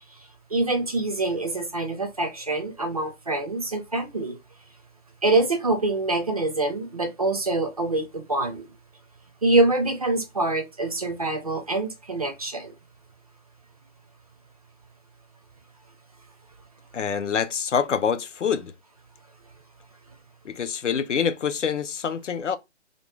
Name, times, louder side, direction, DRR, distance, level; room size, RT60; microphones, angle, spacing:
voice 1, 0.5-4.3 5.2-8.7 9.4-12.7, right 2 dB, 35° right, 0.4 m, -25 dB
voice 2, 16.9-18.7 20.4-22.6, left 7 dB, 80° left, 0.6 m, -26 dB
2.5 x 2.2 x 3.0 m
figure-of-eight pair, 145°, 36 cm